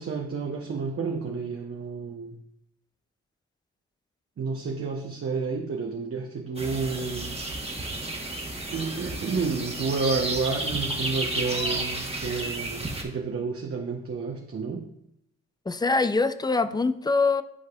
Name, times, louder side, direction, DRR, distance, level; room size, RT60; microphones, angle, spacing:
voice 1, 0.0-2.4 4.4-7.4 8.7-14.9, right 4 dB, 50° right, 1 dB, 0.8 m, -30 dB
sound 1, 6.6-13.0, right 2 dB, 20° right, 1.2 m, -32 dB
voice 2, 15.7-17.4, left 3 dB, 15° left, 12 dB, 0.4 m, -23 dB
10.5 x 4.7 x 2.3 m, 0.77 s
cardioid pair, 70°, 29 cm